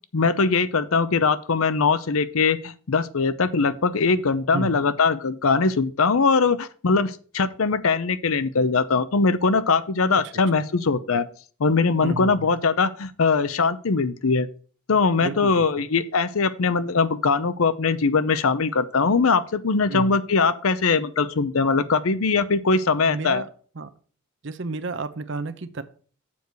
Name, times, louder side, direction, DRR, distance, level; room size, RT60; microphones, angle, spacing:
voice 1, 0.1-11.3 11.6-14.5 14.9-23.4, left 4 dB, 80° left, 14 dB, 0.7 m, -21 dB
voice 2, 12.0-12.5 15.2-15.8 19.9-20.2 23.1-23.5 23.7-23.9 24.4-25.8, right 3 dB, 60° right, 11 dB, 0.7 m, -32 dB
7.1 x 4.7 x 6.6 m, 0.42 s
head